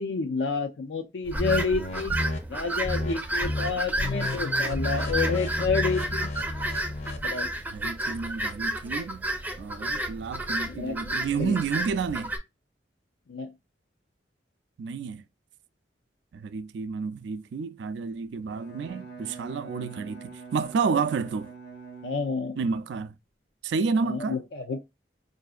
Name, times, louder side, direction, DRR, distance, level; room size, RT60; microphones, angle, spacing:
voice 1, 0.0-2.2 2.5-6.3 7.2-7.5 10.6-11.6 13.3-13.5 19.7-19.9 22.0-22.6 24.0-24.8, left 4 dB, 85° left, 0.5 m, -29 dB
sound 1, 1.3-12.4, right 1 dB, 10° right, 0.4 m, -31 dB
sound 2, 1.4-2.4 2.8-3.1 3.4-3.7 4.0-7.3, left 2 dB, 40° left, 0.6 m, -31 dB
voice 2, 7.7-9.3 9.6-12.3 14.8-15.2 16.3-21.5 22.6-23.1 23.6-24.4, right 5 dB, 75° right, 0.3 m, -30 dB
Bowed string instrument, 18.4-22.7, right 5 dB, 60° left, 1.0 m, -45 dB
4.8 x 2.6 x 2.3 m
head